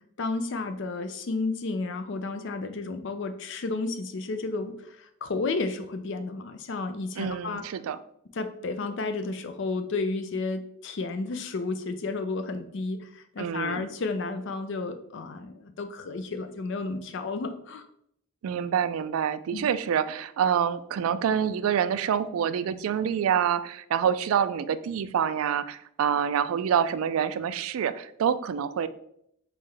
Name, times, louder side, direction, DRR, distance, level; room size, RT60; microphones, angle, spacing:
voice 1, 0.2-7.6 8.3-17.9 19.5-19.7, left 3 dB, 55° left, 8 dB, 0.4 m, -32 dB
voice 2, 7.2-8.0 13.4-13.8 18.4-28.9, right 8 dB, 75° right, 13 dB, 0.3 m, -27 dB
4.0 x 3.8 x 3.3 m, 0.72 s
head